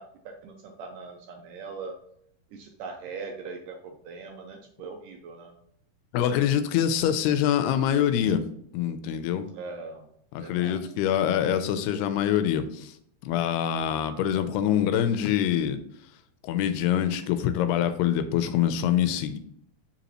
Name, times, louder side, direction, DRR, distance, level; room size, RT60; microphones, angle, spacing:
voice 1, 0.0-2.0 2.5-5.5 9.5-10.1 10.4-10.8, right 4 dB, 80° right, 3 dB, 1.9 m, -40 dB
voice 2, 6.1-8.4 8.7-9.5 10.3-12.9 13.2-15.8 16.4-19.4, left 10 dB, 85° left, 10 dB, 2.7 m, -25 dB
7.0 x 6.0 x 3.0 m, 0.69 s
omnidirectional pair, 4.5 m